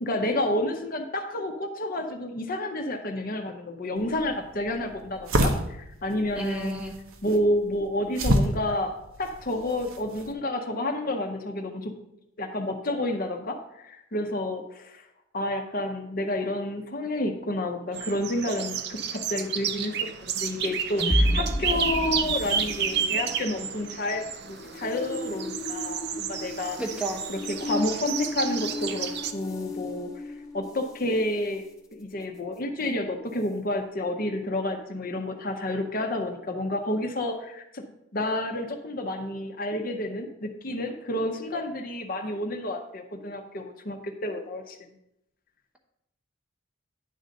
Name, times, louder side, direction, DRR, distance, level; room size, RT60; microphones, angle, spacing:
voice 1, 0.0-6.8 7.2-11.9 12.4-15.0 15.3-19.9 20.2-26.8 27.3-30.1 30.5-31.7 31.9-37.8 38.1-44.8, left 1 dB, 40° left, 4 dB, 0.7 m, -30 dB
sound 1, 4.0-10.3, right 1 dB, 80° right, 1.0 m, -30 dB
voice 2, 6.4-6.9 26.8-27.2, right 2 dB, 5° right, 0 dB, 0.9 m, -32 dB
sound 2, 17.9-29.3, right 7 dB, 50° right, 0.5 m, -31 dB
sound 3, 20.6-31.1, left 1 dB, 15° left, 1.1 m, -32 dB
10.0 x 3.9 x 6.4 m, 0.83 s
head